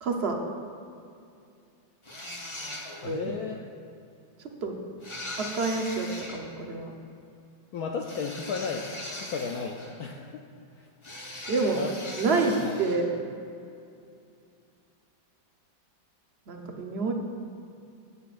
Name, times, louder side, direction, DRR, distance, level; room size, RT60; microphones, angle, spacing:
voice 1, 0.0-0.4 3.0-3.3 4.6-4.7 5.4-6.9 11.5-11.8 12.2-12.5 12.8-13.1 16.5-17.1, right 3 dB, 55° right, 2 dB, 0.7 m, -28 dB
sound 1, 2.0-3.2 5.0-6.4 8.0-10.1 11.0-13.0, left 1 dB, 25° left, 0.7 m, -40 dB
voice 2, 3.0-3.7 7.7-8.9 9.2-10.4 10.7-10.9 11.7-11.9 12.5-12.7, left 5 dB, 75° left, 2 dB, 0.8 m, -34 dB
17.5 x 8.4 x 2.5 m, 2.5 s
omnidirectional pair, 2.2 m